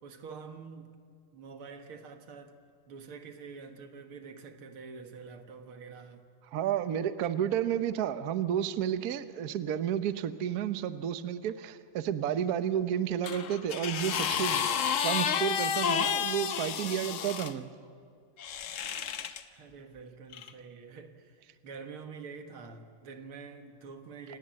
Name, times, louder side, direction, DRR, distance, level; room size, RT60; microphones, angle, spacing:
voice 1, 0.0-0.9 1.3-2.6 2.9-6.2 19.3-24.4, right 5 dB, 85° right, 6 dB, 2.4 m, -47 dB
voice 2, 6.5-14.6 15.0-17.7, right 9 dB, 60° right, 12 dB, 1.1 m, -31 dB
sound 1, 13.2-17.5 18.4-19.4 20.3-20.5, left 8 dB, 60° left, 0.8 m, -31 dB
27.5 x 18.5 x 7.6 m, 2.3 s
omnidirectional pair, 2.3 m